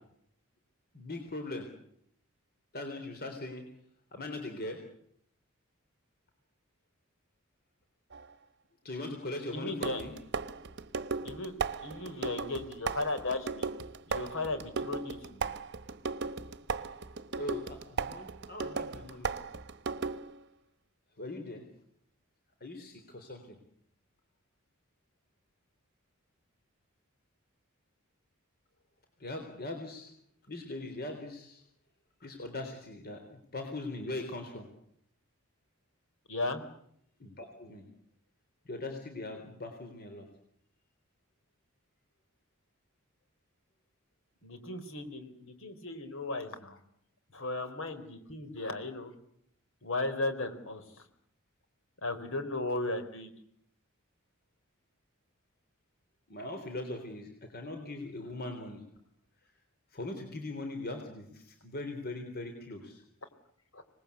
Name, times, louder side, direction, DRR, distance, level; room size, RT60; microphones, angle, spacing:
voice 1, 0.9-1.7 2.7-3.6 4.1-4.8 8.8-10.1 17.3-19.3 21.2-21.6 22.6-23.6 29.2-30.1 30.5-31.6 32.2-34.7 37.2-37.9 38.7-40.3 56.3-58.8 59.9-63.0, left 2 dB, 45° left, 5 dB, 3.8 m, -40 dB
sound 1, 8.1-8.3 9.8-20.4, right 4 dB, 55° right, 1.0 m, -36 dB
voice 2, 9.5-10.0 11.2-11.5 11.8-13.7 14.1-15.4 36.3-36.6 44.4-46.8 47.3-49.1 49.8-50.8 52.0-53.3 63.7-63.8, left 2 dB, 65° left, 9 dB, 4.1 m, -36 dB
26.0 x 20.0 x 8.4 m, 0.70 s
head